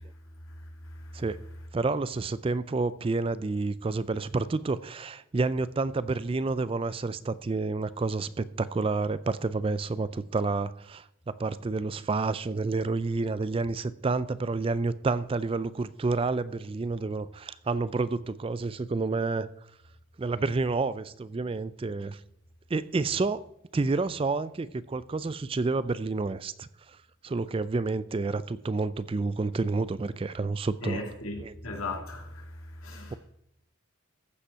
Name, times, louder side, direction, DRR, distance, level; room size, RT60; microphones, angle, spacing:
voice 1, 0.8-1.2 30.8-33.2, left 2 dB, 80° left, 2.7 m, -37 dB
voice 2, 1.7-19.5 20.2-22.2 22.7-23.4 23.7-27.0 27.2-31.0 31.4-31.5, right 3 dB, 25° right, 0.3 m, -29 dB
15.0 x 5.5 x 5.6 m
head